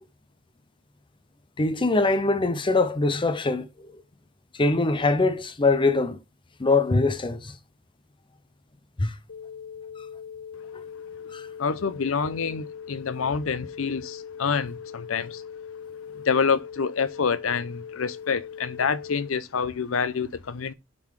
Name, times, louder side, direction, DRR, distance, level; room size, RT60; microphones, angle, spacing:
voice 1, 1.6-3.9 4.6-6.2 6.6-7.5 9.0-9.1 11.3-11.5, left 3 dB, 25° left, 0.6 m, -23 dB
sound 1, 9.3-19.3, left 7 dB, 65° left, 1.0 m, -40 dB
voice 2, 11.6-15.4 16.1-20.7, left 5 dB, 80° left, 0.6 m, -27 dB
7.3 x 3.9 x 4.7 m
head